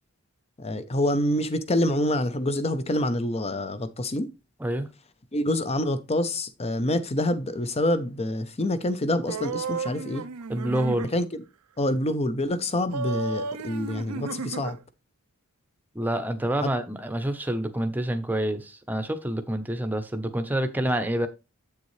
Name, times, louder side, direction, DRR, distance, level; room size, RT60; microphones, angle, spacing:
voice 1, 0.6-4.3 5.3-10.2 11.1-11.4 11.8-14.8 16.6-16.7, left 1 dB, 30° left, 0.7 m, -26 dB
sound 1, 9.3-11.1 12.9-14.8, right 4 dB, 90° right, 0.6 m, -33 dB
voice 2, 10.5-11.1 15.9-21.3, right 1 dB, 10° right, 0.8 m, -27 dB
8.1 x 6.8 x 3.2 m
head